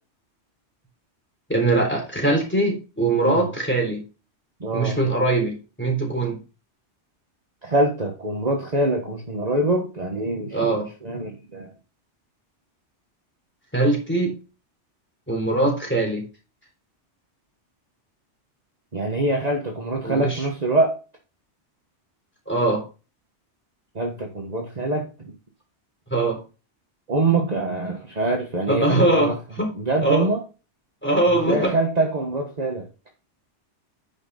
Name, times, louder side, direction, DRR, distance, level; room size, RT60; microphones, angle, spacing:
voice 1, 1.5-4.0 4.7-5.5 5.8-6.4 10.5-10.9 13.7-14.3 15.3-16.2 20.0-20.4 22.5-22.8 26.1-26.4 28.7-29.7 30.0-30.3 31.0-31.7, right 2 dB, 10° left, 0 dB, 3.7 m, -21 dB
voice 2, 4.6-5.0 7.6-11.7 18.9-21.0 23.9-25.3 27.1-29.4 29.7-30.4 31.3-32.9, right 2 dB, 35° right, 1 dB, 1.4 m, -24 dB
9.8 x 5.6 x 4.2 m, 0.32 s
omnidirectional pair, 1.2 m